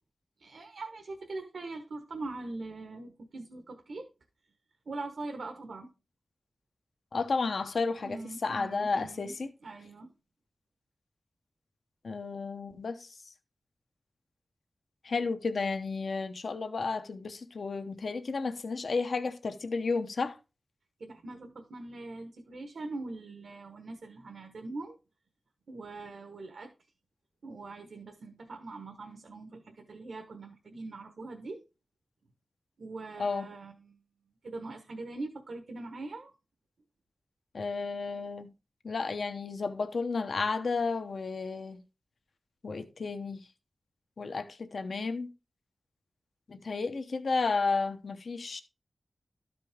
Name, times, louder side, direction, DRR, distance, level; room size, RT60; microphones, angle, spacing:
voice 1, 0.4-4.1 4.9-5.9 8.0-9.3 9.6-10.1 21.0-25.0 25.7-26.7 27.4-31.6 32.8-34.0 34.4-36.3, right 2 dB, 85° right, 1.2 m, -42 dB
voice 2, 7.1-9.5 12.0-13.0 15.0-20.4 33.2-33.5 37.5-38.5 38.8-41.8 42.6-43.4 44.2-45.3 46.5-48.6, left 4 dB, 70° left, 0.8 m, -32 dB
12.5 x 5.2 x 3.5 m
wide cardioid pair, 115°, 0 cm